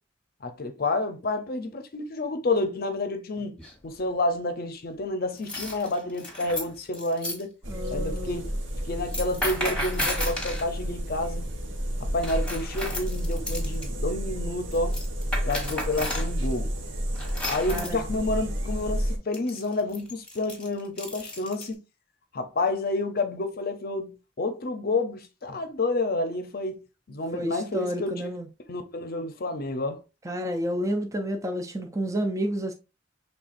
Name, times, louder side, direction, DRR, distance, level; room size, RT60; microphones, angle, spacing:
voice 1, 0.4-7.5 7.9-8.5 8.8-11.5 12.0-15.0 15.4-16.7 17.5-21.8 22.3-28.3 28.7-30.0, left 2 dB, 50° left, 0.6 m, -29 dB
sound 1, 3.6-4.0 5.3-7.4 9.0-10.7 12.2-13.9 14.7-16.3 17.1-18.0 19.3-21.7, left 1 dB, 5° left, 1.3 m, -33 dB
sound 2, 7.6-19.2, equal, 75° right, 1.0 m, -31 dB
voice 2, 7.7-8.4 17.7-18.0 27.3-28.5 30.2-32.7, equal, 15° right, 0.5 m, -30 dB
5.7 x 3.4 x 2.5 m
head